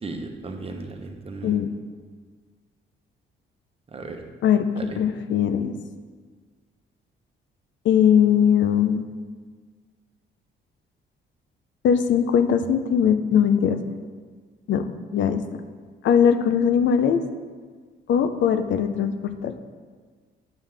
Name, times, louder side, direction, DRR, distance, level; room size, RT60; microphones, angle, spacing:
voice 1, 0.0-1.5 3.9-4.2 4.7-5.0, right 3 dB, 30° right, 4 dB, 0.9 m, -35 dB
voice 2, 1.4-1.7 4.4-4.7 5.0-5.7 7.8-9.1 11.8-13.8 14.7-15.4 16.0-17.2 18.1-19.5, left 8 dB, 70° left, 9 dB, 0.6 m, -20 dB
9.1 x 5.5 x 3.4 m, 1.5 s
cardioid pair, 90°, 20 cm